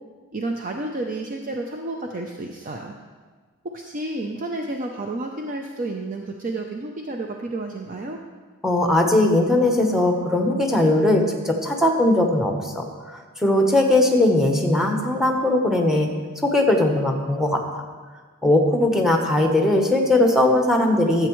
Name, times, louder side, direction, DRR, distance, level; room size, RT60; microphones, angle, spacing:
voice 1, 0.3-2.9 3.6-8.2, right 2 dB, 40° right, 2 dB, 0.5 m, -31 dB
voice 2, 8.6-16.1 16.4-17.8 18.4-21.3, left 1 dB, ahead, 2 dB, 0.9 m, -19 dB
12.5 x 7.8 x 3.1 m, 1.5 s
head